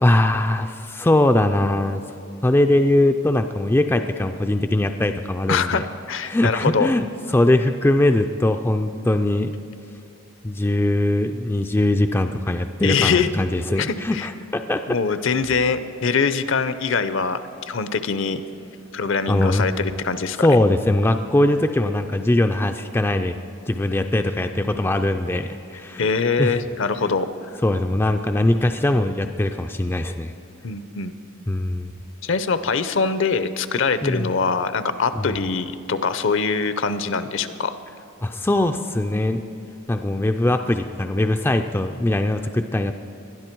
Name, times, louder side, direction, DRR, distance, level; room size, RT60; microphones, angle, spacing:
voice 1, 0.0-2.0 2.4-5.8 6.3-9.5 10.4-14.8 19.3-19.7 20.4-23.4 23.7-26.1 26.4-26.6 27.0-27.2 27.6-30.3 31.5-32.0 34.0-34.3 35.2-35.3 38.2-39.4 39.9-42.9, left 1 dB, 10° left, 6 dB, 0.3 m, -21 dB
voice 2, 5.5-6.9 12.8-13.3 13.8-14.3 14.9-18.4 18.9-20.5 26.0-27.3 30.6-31.1 32.2-37.8, left 5 dB, 60° left, 12 dB, 0.6 m, -23 dB
20.5 x 12.0 x 4.5 m, 2.6 s
head